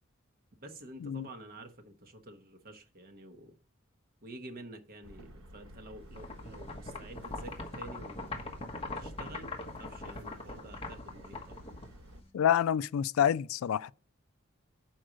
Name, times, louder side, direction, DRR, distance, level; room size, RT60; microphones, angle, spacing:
voice 1, 0.6-3.5 4.2-8.4 8.9-11.7, right 1 dB, 45° right, 1.1 m, -49 dB
sound 1, 5.0-12.2, equal, 90° right, 1.1 m, -52 dB
sound 2, 6.1-12.3, left 3 dB, 30° left, 1.2 m, -42 dB
voice 2, 12.3-13.9, left 9 dB, 85° left, 0.3 m, -27 dB
6.4 x 4.5 x 6.3 m
head